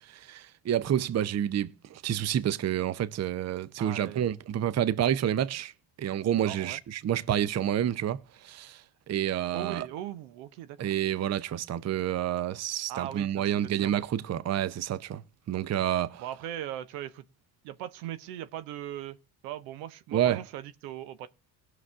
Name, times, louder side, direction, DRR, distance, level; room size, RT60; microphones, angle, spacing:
voice 1, 0.1-5.7 6.0-8.2 8.4-8.8 9.1-9.9 10.8-15.2 15.5-16.2 20.1-20.4, right 10 dB, 35° right, 0.7 m, -29 dB
voice 2, 3.8-4.3 6.4-6.8 9.5-11.0 12.9-13.9 16.2-17.2 17.6-19.2 19.4-21.3, right 12 dB, 85° right, 1.1 m, -39 dB
19.0 x 6.4 x 3.6 m
supercardioid pair, 80°, 46 cm